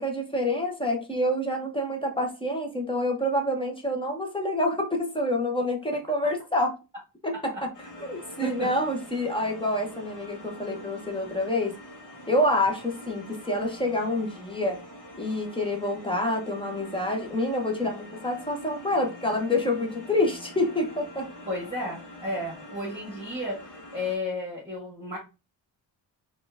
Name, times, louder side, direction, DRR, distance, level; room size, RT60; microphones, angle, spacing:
voice 1, 0.0-6.7 7.2-7.7 8.0-11.8 12.3-14.8 15.2-21.3, left 1 dB, 10° left, 0.8 m, -27 dB
voice 2, 7.3-7.6 8.0-8.1 8.4-8.7 21.4-25.2, left 1 dB, 10° right, 1.6 m, -33 dB
sound 1, 7.7-24.1, left 1 dB, 45° left, 1.1 m, -45 dB
4.3 x 2.6 x 3.4 m
wide cardioid pair, 145°, 45 cm